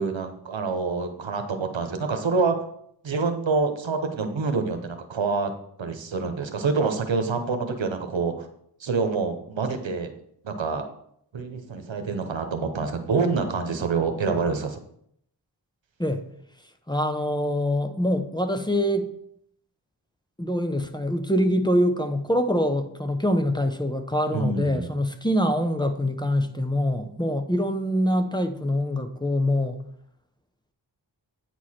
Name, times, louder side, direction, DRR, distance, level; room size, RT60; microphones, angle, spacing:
voice 1, 0.0-2.6 3.0-5.5 5.8-8.5 8.8-10.1 10.4-10.8 11.3-14.8 24.3-24.9, right 4 dB, 90° right, 6 dB, 1.0 m, -26 dB
voice 2, 16.9-19.1 20.4-29.8, equal, 10° left, 7 dB, 0.7 m, -24 dB
9.0 x 4.7 x 4.3 m, 0.70 s
wide cardioid pair, 50°, 44 cm